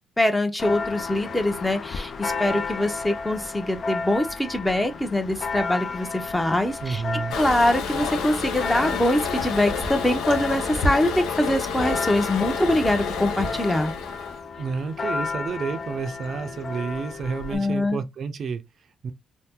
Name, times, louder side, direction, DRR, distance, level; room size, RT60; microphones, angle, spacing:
voice 1, 0.2-7.0 7.3-13.9 17.5-18.0, left 1 dB, 10° left, 0.7 m, -23 dB
Church bell, 0.6-17.6, left 4 dB, 55° left, 0.4 m, -33 dB
voice 2, 6.8-7.4 14.6-19.1, right 5 dB, 60° right, 0.4 m, -30 dB
Toilet flush, 7.3-14.4, left 5 dB, 90° left, 0.7 m, -29 dB
2.7 x 2.1 x 3.5 m
cardioid pair, 70°, 0 cm